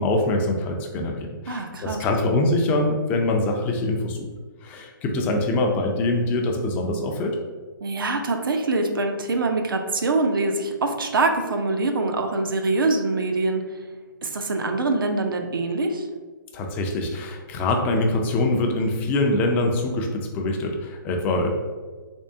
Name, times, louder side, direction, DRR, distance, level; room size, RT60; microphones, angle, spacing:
voice 1, 0.0-4.3 4.6-7.4 16.5-21.5, left 2 dB, 15° left, 2 dB, 0.4 m, -24 dB
voice 2, 1.5-2.0 7.8-13.6 14.2-16.1, right 3 dB, 80° right, 4 dB, 0.6 m, -24 dB
3.5 x 3.2 x 2.7 m, 1.4 s
hypercardioid pair, 145°, 11 cm